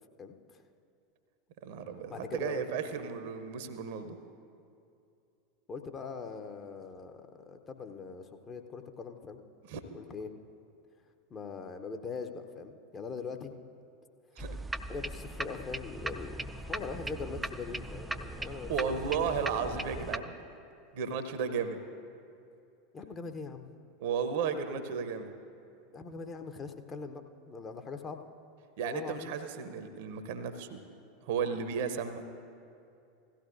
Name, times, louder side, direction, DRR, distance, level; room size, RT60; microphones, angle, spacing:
voice 1, 0.2-0.6 2.1-2.7 2.9-3.1 5.7-9.4 9.9-10.3 11.3-13.5 14.9-16.4 16.7-19.3 22.9-23.7 25.9-27.2 27.5-28.2 28.8-29.3, left 5 dB, 25° left, 6 dB, 0.7 m, -41 dB
voice 2, 1.6-4.2 9.7-10.0 14.4-14.5 18.4-20.3 20.9-21.8 24.0-25.3 28.8-30.8 31.2-32.2, right 6 dB, 55° right, 9 dB, 0.8 m, -34 dB
sound 1, 14.4-20.2, right 2 dB, 10° right, 0.4 m, -39 dB
17.0 x 14.5 x 2.6 m, 2.6 s
figure-of-eight pair, 80°, 0 cm